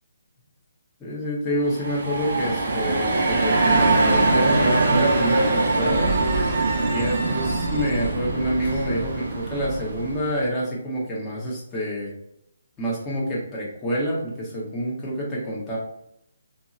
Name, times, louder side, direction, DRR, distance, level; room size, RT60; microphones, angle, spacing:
voice 1, 1.0-6.2 6.9-12.1 12.8-15.8, equal, 15° left, -5 dB, 1.1 m, -27 dB
sound 1, 1.6-10.3, right 2 dB, 50° right, 0.8 m, -22 dB
3.8 x 2.7 x 2.5 m, 0.77 s
figure-of-eight pair, 140°, 0 cm